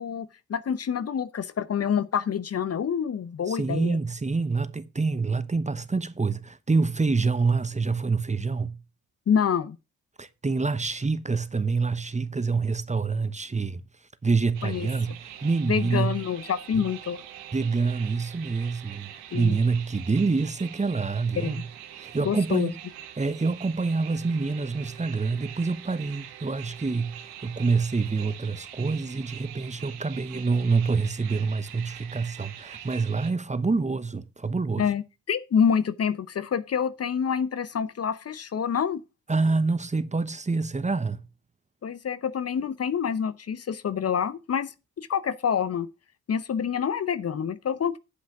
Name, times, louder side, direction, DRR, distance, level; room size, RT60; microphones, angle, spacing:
voice 1, 0.0-4.0 9.3-9.8 14.6-14.9 15.7-17.2 19.3-19.6 21.4-21.6 22.2-22.7 34.8-39.0 41.8-45.9 46.3-48.0, left 7 dB, 45° left, 0.8 m, -27 dB
voice 2, 3.5-8.8 10.2-13.8 14.2-16.2 16.8-16.9 17.5-21.6 22.0-22.7 23.2-34.9 39.3-41.2, right 4 dB, 20° right, 1.0 m, -26 dB
sound 1, 14.5-33.3, right 11 dB, 90° right, 1.3 m, -44 dB
10.0 x 5.7 x 5.9 m
hypercardioid pair, 50°, 36 cm